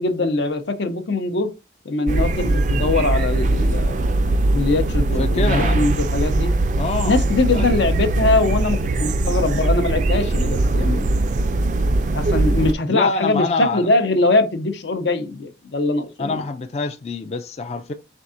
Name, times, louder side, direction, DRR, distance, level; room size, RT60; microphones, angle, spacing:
voice 1, 0.0-1.5 1.8-4.0 4.5-6.5 7.0-11.1 12.1-16.4, left 2 dB, 80° left, 0.7 m, -22 dB
sound 1, 2.1-12.7, right 2 dB, 45° right, 0.3 m, -20 dB
voice 2, 5.2-5.8 6.8-7.2 7.5-7.8 12.9-13.9 16.2-17.9, left 3 dB, 35° left, 0.3 m, -25 dB
4.5 x 3.5 x 2.5 m
head